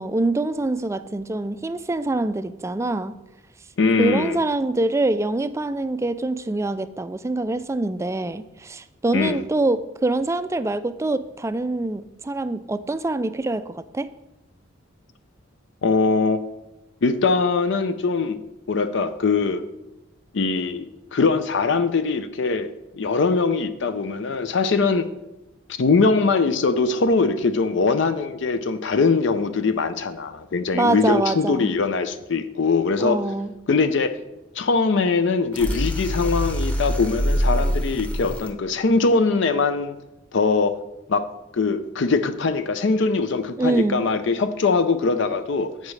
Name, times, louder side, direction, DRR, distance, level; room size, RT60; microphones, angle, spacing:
voice 1, 0.0-3.1 4.0-14.1 30.7-31.7 33.0-33.5 43.6-44.1, right 2 dB, 15° right, 13 dB, 0.3 m, -25 dB
voice 2, 3.8-4.4 9.1-9.4 15.8-16.4 17.0-18.4 18.7-19.6 20.3-22.7 23.0-25.1 25.8-33.2 33.7-34.2 34.6-40.0 40.3-40.7 41.1-41.2 41.5-45.9, left 4 dB, 65° left, 10 dB, 0.5 m, -22 dB
sound 1, 35.5-38.5, equal, 5° left, 0.8 m, -24 dB
11.0 x 8.3 x 3.2 m, 0.94 s
head